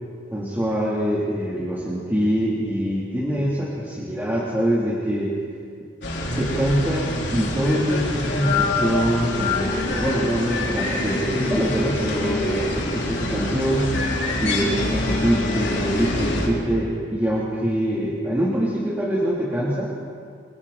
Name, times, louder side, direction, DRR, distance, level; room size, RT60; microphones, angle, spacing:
voice 1, 0.3-5.4 6.4-13.9 14.4-19.9, equal, 10° right, -8 dB, 3.5 m, -24 dB
sound 1, 6.0-16.5, left 2 dB, 70° left, 4.4 m, -25 dB
30.0 x 23.5 x 4.4 m, 2.3 s
head